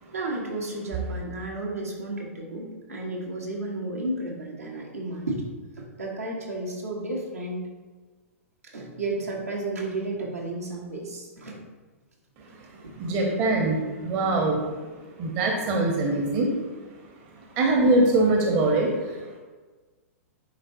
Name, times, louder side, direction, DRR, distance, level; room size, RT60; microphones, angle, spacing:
voice 1, 0.1-5.4 5.8-7.6 8.6-11.6, right 2 dB, 80° right, -2 dB, 1.4 m, -32 dB
voice 2, 13.0-13.8 14.0-14.6 15.2-16.5 17.6-18.9, right 2 dB, 40° right, 1 dB, 1.0 m, -22 dB
10.0 x 3.9 x 2.7 m, 1.3 s
figure-of-eight pair, 105°, 8 cm